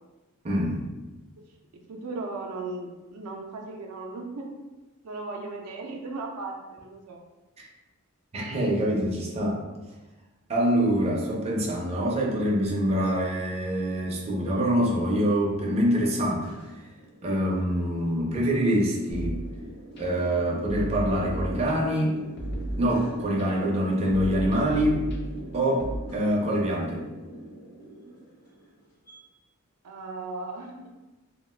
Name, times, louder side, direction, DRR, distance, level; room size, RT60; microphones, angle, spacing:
voice 1, 0.4-0.9 8.3-9.6 10.5-16.5 17.2-19.4 20.0-22.2 22.8-25.1 25.5-27.1, equal, 30° right, -3 dB, 0.4 m, -25 dB
voice 2, 1.9-4.5 5.0-7.2 29.8-30.9, right 3 dB, 85° right, 1 dB, 0.4 m, -37 dB
sound 1, 15.5-29.2, right 1 dB, 90° left, 0.9 m, -44 dB
sound 2, 19.1-20.0 20.7-22.0 22.4-23.4 24.1-26.0, right 1 dB, 50° left, 0.5 m, -34 dB
2.3 x 2.1 x 3.2 m, 1.1 s
head